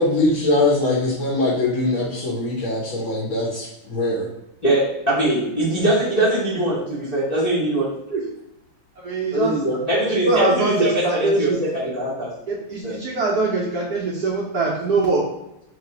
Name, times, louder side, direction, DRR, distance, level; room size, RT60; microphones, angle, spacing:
voice 1, 0.0-4.3, left 2 dB, 70° left, -4 dB, 0.7 m, -22 dB
voice 2, 4.6-7.9 9.3-12.3 12.8-13.0, right 1 dB, 85° left, -9 dB, 0.3 m, -22 dB
voice 3, 9.0-9.6 10.1-11.6 12.5-15.3, right 3 dB, 80° right, -4 dB, 0.8 m, -22 dB
3.2 x 3.0 x 4.1 m, 0.86 s
omnidirectional pair, 2.4 m